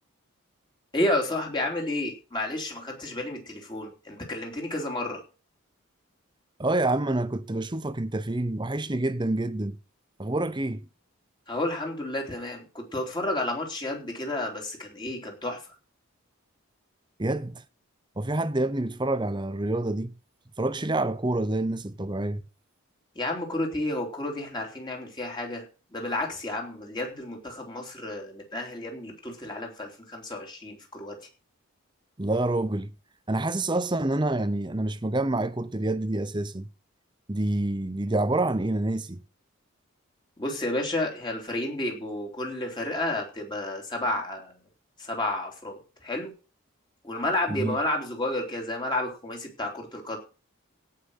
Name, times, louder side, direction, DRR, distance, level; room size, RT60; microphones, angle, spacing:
voice 1, 0.9-5.2 11.5-15.6 23.1-25.7 25.9-31.1 40.4-44.5 45.0-46.3 47.0-50.2, left 1 dB, 20° left, 3.4 m, -31 dB
voice 2, 6.6-9.8 10.2-10.9 17.2-17.6 18.2-20.1 20.6-22.4 32.2-32.9 33.3-36.7 37.3-39.2 47.5-47.8, right 2 dB, 20° right, 0.7 m, -27 dB
17.0 x 5.8 x 6.5 m
head